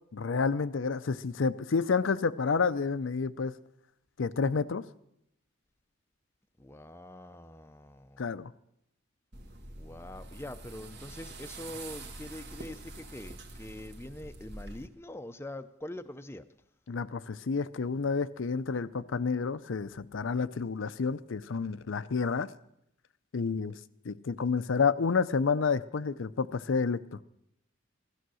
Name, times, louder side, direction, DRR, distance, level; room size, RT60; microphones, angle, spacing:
voice 1, 0.1-3.5 4.2-4.8 8.2-8.5 16.9-22.5 23.3-23.8 24.0-27.2, left 5 dB, 70° left, 0.5 m, -29 dB
voice 2, 6.6-8.2 9.8-16.4, left 1 dB, 10° left, 0.5 m, -44 dB
sound 1, 9.3-14.9, right 2 dB, 55° right, 1.7 m, -45 dB
17.0 x 13.0 x 6.2 m
head